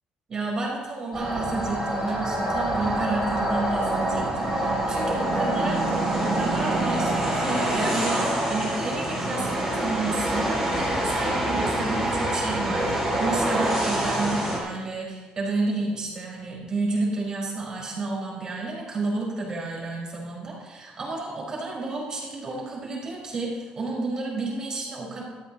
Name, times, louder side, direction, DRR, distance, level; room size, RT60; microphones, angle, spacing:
voice 1, 0.3-25.2, right 3 dB, 30° right, -3 dB, 4.6 m, -31 dB
sound 1, 1.1-14.6, right 1 dB, 5° right, 4.6 m, -26 dB
17.5 x 13.5 x 2.9 m, 1.3 s
cardioid pair, 155°, 3 cm